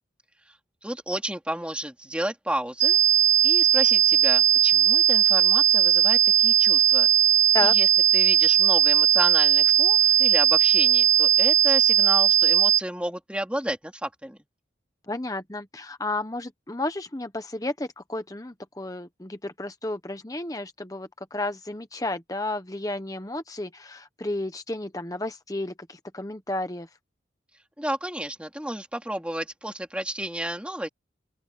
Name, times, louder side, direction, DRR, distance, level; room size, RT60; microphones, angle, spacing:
voice 1, 0.8-3.0 3.4-7.1 7.6-14.4 27.8-30.9, right 1 dB, 5° right, 2.8 m, -32 dB
sound 1, 2.8-12.8, right 9 dB, 40° right, 1.3 m, -18 dB
voice 2, 15.1-26.9, left 2 dB, 20° left, 1.1 m, -32 dB
open air
head